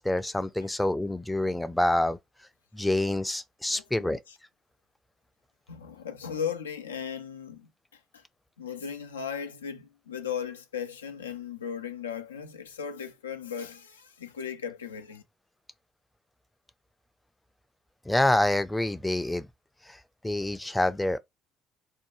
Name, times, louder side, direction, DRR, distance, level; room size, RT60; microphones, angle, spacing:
voice 1, 0.0-2.2 2.7-4.2 18.1-19.5 20.2-21.2, left 1 dB, 10° left, 0.4 m, -26 dB
voice 2, 3.7-4.4 5.7-8.2 8.6-15.2, left 7 dB, 90° left, 0.4 m, -37 dB
2.7 x 2.1 x 3.0 m
hypercardioid pair, 55°, 0 cm